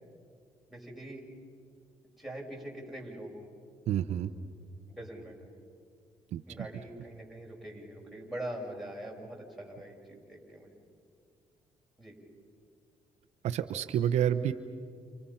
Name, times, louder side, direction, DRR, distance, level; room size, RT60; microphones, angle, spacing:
voice 1, 0.7-1.2 2.2-3.5 4.9-5.3 6.5-10.7 12.0-12.2, right 1 dB, ahead, -2 dB, 7.3 m, -43 dB
voice 2, 3.9-4.3 6.3-6.4 13.4-14.5, right 10 dB, 75° right, 10 dB, 0.9 m, -28 dB
30.0 x 29.5 x 5.8 m, 2.2 s
supercardioid pair, 75°, 12 cm